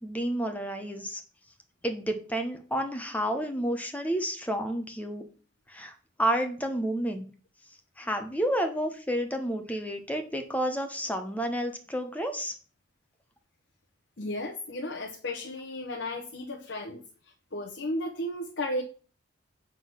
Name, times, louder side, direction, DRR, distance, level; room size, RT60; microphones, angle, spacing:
voice 1, 0.0-1.2 1.8-5.2 5.7-5.9 6.2-7.3 8.0-12.5, right 1 dB, 10° left, 6 dB, 0.9 m, -30 dB
voice 2, 14.2-17.0 17.5-18.8, left 1 dB, 65° left, 1 dB, 1.0 m, -34 dB
7.8 x 3.8 x 6.2 m, 0.40 s
head